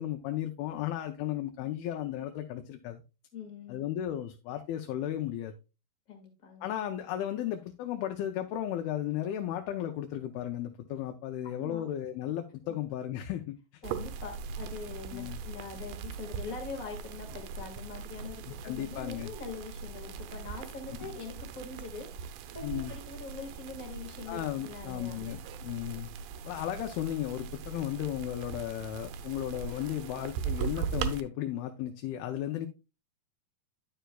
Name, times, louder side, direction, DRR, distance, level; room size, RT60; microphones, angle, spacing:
voice 1, 0.0-3.0 3.7-5.5 6.6-13.8 15.1-15.4 18.6-19.3 22.6-22.9 24.3-26.1 26.5-32.7, left 11 dB, 85° left, 2.5 m, -35 dB
voice 2, 3.3-3.8 6.1-6.6 11.6-11.8 12.6-12.8 13.8-25.2, left 4 dB, 40° left, 1.2 m, -43 dB
sound 1, 13.8-31.2, right 6 dB, 80° right, 2.0 m, -40 dB
10.0 x 6.8 x 2.3 m
omnidirectional pair, 4.4 m